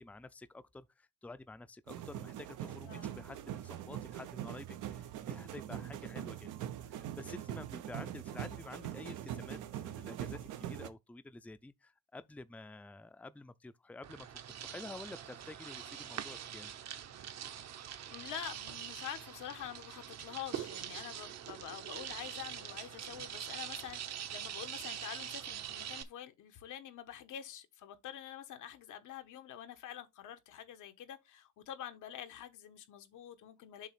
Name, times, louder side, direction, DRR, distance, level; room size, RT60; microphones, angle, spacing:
voice 1, 0.0-14.3 14.6-16.7, left 2 dB, 5° left, 0.5 m, -50 dB
sound 1, 1.9-10.9, right 11 dB, 85° right, 0.9 m, -43 dB
voice 2, 2.8-3.3 17.7-33.9, left 10 dB, 85° left, 1.3 m, -47 dB
sound 2, 14.0-26.0, right 9 dB, 60° right, 1.0 m, -44 dB
7.3 x 3.0 x 5.8 m
cardioid pair, 90°, 30 cm